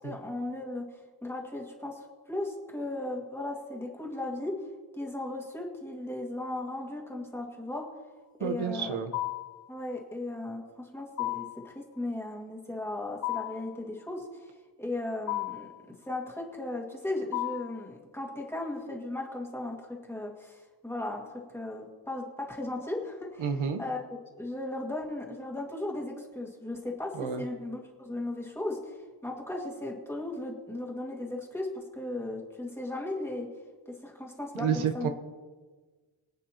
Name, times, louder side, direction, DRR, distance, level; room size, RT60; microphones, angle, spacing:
voice 1, 0.0-4.5 4.9-7.9 8.4-9.0 9.7-14.3 14.8-24.0 24.4-29.0 29.2-33.5 33.9-35.1, left 2 dB, 5° left, -1 dB, 2.0 m, -36 dB
voice 2, 8.4-9.1 23.4-23.8 27.2-27.4 34.6-35.1, right 7 dB, 75° right, 7 dB, 1.2 m, -30 dB
sound 1, 9.1-9.6 11.2-11.7 13.2-13.7 15.3-15.8 17.3-17.8, left 16 dB, 35° left, 0.6 m, -33 dB
24.5 x 8.9 x 2.9 m, 1.3 s
wide cardioid pair, 155°, 49 cm